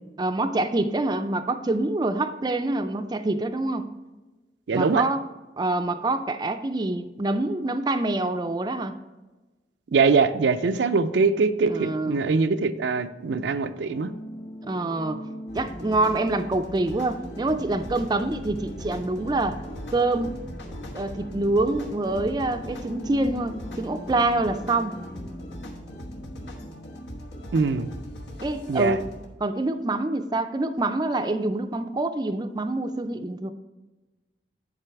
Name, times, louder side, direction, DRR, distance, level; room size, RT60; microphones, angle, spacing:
voice 1, 0.2-3.9 4.7-5.2 5.6-8.9 11.7-12.2 14.6-15.2 15.5-19.6 19.9-20.4 20.9-25.0 28.4-29.0 29.4-33.5, right 2 dB, 25° right, 0.4 m, -26 dB
voice 2, 4.7-5.0 9.9-14.1 27.5-27.9 28.7-29.0, right 4 dB, 80° right, 0.4 m, -22 dB
sound 1, 13.7-26.9, equal, 30° left, 1.2 m, -42 dB
sound 2, 15.5-29.3, equal, 75° left, 1.1 m, -40 dB
9.9 x 4.2 x 4.6 m
head